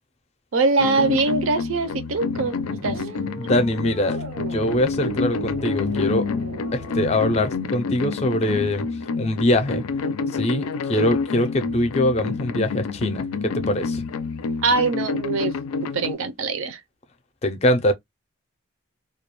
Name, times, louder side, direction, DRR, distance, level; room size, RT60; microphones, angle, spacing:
voice 1, 0.5-2.5 2.8-3.1 14.6-16.8, right 3 dB, 70° right, 0.5 m, -23 dB
sound 1, 0.8-16.1, left 4 dB, 90° left, 0.4 m, -28 dB
sound 2, 2.8-7.6, right 3 dB, 85° right, 0.8 m, -37 dB
voice 2, 3.4-6.3 6.7-8.9 9.2-9.8 10.3-14.0 17.4-17.9, left 1 dB, 30° left, 0.4 m, -23 dB
2.3 x 2.1 x 2.9 m
head